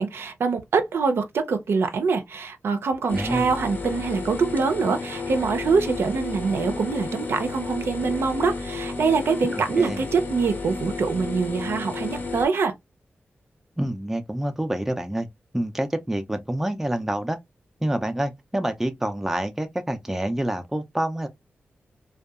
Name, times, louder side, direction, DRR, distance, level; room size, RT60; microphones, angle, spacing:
voice 1, 0.0-12.7, right 5 dB, 70° right, 0.5 m, -24 dB
sound 1, 3.1-12.5, left 3 dB, 50° left, 0.7 m, -32 dB
voice 2, 3.1-3.5 9.5-10.0 13.8-15.3 15.5-17.4 17.8-21.3, right 1 dB, 5° right, 0.3 m, -27 dB
2.6 x 2.2 x 2.3 m
wide cardioid pair, 130°, 4 cm